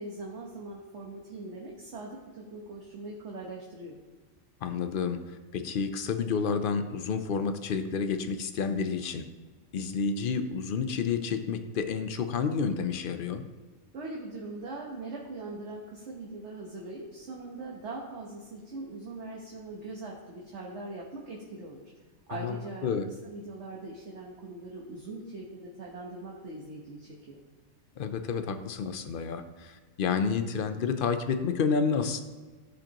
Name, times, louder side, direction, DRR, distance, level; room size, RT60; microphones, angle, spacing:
voice 1, 0.0-4.0 13.9-21.9 22.3-27.4, right 2 dB, 55° right, -2 dB, 1.4 m, -41 dB
voice 2, 4.6-5.2 5.5-9.2 9.7-13.4 22.3-23.1 28.0-32.2, left 5 dB, 60° left, 8 dB, 0.6 m, -30 dB
14.5 x 5.2 x 2.9 m, 1.4 s
omnidirectional pair, 1.5 m